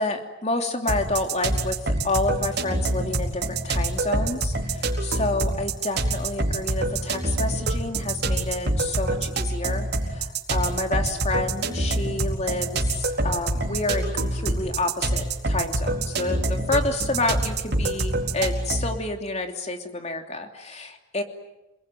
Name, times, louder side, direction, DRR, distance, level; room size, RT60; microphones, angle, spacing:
voice 1, 0.0-21.2, left 2 dB, 35° left, 4 dB, 3.0 m, -29 dB
sound 1, 0.9-19.0, right 2 dB, 60° right, 4.4 m, -26 dB
29.0 x 21.0 x 9.3 m, 0.96 s
head